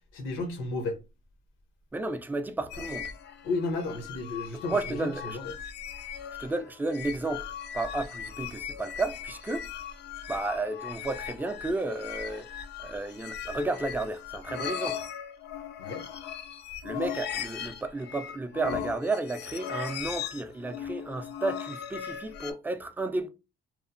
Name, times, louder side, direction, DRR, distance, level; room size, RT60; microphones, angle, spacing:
voice 1, 0.1-1.0 3.4-5.5 15.8-16.0, left 3 dB, 85° left, 0.7 m, -33 dB
voice 2, 1.9-3.1 4.7-5.4 6.4-7.5 7.7-9.7 10.3-15.0 16.8-23.3, right 2 dB, 10° right, 0.3 m, -32 dB
sound 1, 2.7-22.5, left 8 dB, 60° left, 0.4 m, -38 dB
2.9 x 2.1 x 2.5 m
cardioid pair, 90°, 20 cm